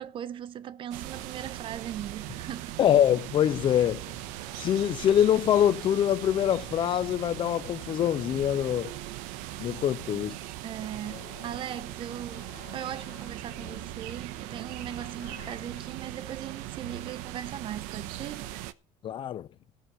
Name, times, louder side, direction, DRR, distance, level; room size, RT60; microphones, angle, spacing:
voice 1, 0.0-2.8 10.6-18.5, right 10 dB, 45° right, 0.7 m, -39 dB
sound 1, 0.9-18.7, right 14 dB, 85° right, 0.8 m, -40 dB
voice 2, 2.8-4.1 4.6-8.9 9.6-10.4 19.0-19.5, left 10 dB, 40° left, 0.5 m, -24 dB
sound 2, 10.8-16.0, left 11 dB, 80° left, 2.2 m, -52 dB
14.5 x 5.9 x 8.0 m
cardioid pair, 125°, 13 cm